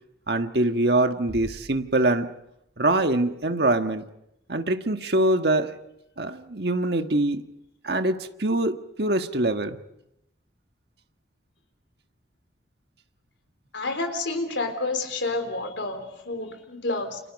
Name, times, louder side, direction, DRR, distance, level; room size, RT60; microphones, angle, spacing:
voice 1, 0.3-2.3 2.8-4.0 4.5-5.8 6.2-7.4 7.8-9.8, right 2 dB, 60° right, 7 dB, 1.6 m, -24 dB
sound 1, 1.3-3.2, equal, ahead, 6.7 m, -46 dB
voice 2, 13.7-17.2, left 2 dB, 80° left, 7 dB, 3.7 m, -29 dB
30.0 x 28.5 x 5.4 m, 0.81 s
head